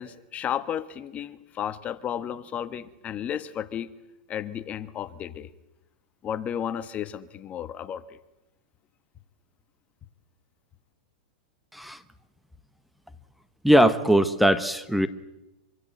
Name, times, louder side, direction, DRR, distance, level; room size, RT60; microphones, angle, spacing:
voice 1, 0.0-3.9 4.3-5.5 6.2-8.2, left 9 dB, 30° left, 13 dB, 1.3 m, -33 dB
voice 2, 13.6-15.1, equal, ahead, 11 dB, 1.2 m, -20 dB
25.5 x 24.5 x 7.9 m, 0.94 s
hypercardioid pair, 125°, 5 cm